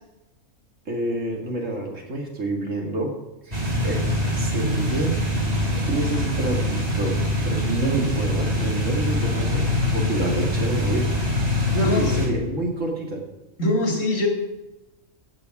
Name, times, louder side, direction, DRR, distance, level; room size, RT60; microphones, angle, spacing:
voice 1, 0.9-3.1 3.4-5.1 5.7-7.1 7.4-11.1 11.7-13.2, right 2 dB, 70° right, 1 dB, 2.7 m, -28 dB
sound 1, 3.5-12.3, left 1 dB, 30° right, 2.6 m, -24 dB
voice 2, 13.6-14.3, left 1 dB, 75° left, 1 dB, 2.9 m, -22 dB
16.0 x 6.9 x 6.0 m, 0.99 s
omnidirectional pair, 1.4 m